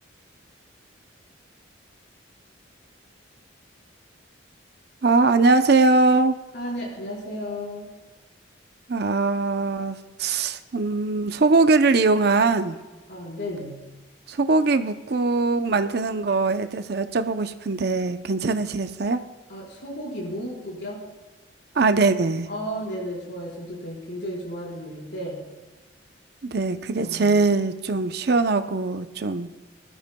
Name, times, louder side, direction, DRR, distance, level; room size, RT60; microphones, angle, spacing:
voice 1, 5.0-6.3 8.9-12.8 14.3-19.2 21.8-22.5 26.5-29.5, right 3 dB, 55° right, 9 dB, 0.6 m, -21 dB
voice 2, 6.5-7.9 13.1-13.8 19.5-21.0 22.5-25.4 27.0-27.4, equal, 60° left, -3 dB, 4.6 m, -33 dB
21.0 x 12.5 x 2.2 m, 1.2 s
head